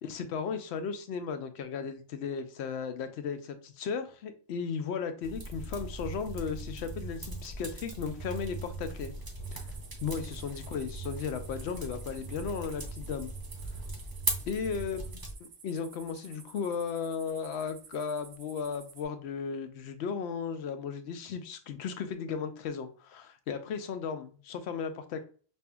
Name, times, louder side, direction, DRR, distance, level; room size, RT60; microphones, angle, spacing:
voice 1, 0.0-9.1 9.5-9.7 10.0-13.3 14.5-15.0 15.4-25.2, left 6 dB, 80° left, 9 dB, 0.8 m, -35 dB
sound 1, 5.2-15.3, right 2 dB, 25° right, 0.6 m, -39 dB
sound 2, 9.4-19.0, right 6 dB, 80° right, 1.0 m, -53 dB
5.4 x 2.5 x 2.3 m, 0.40 s
omnidirectional pair, 1.1 m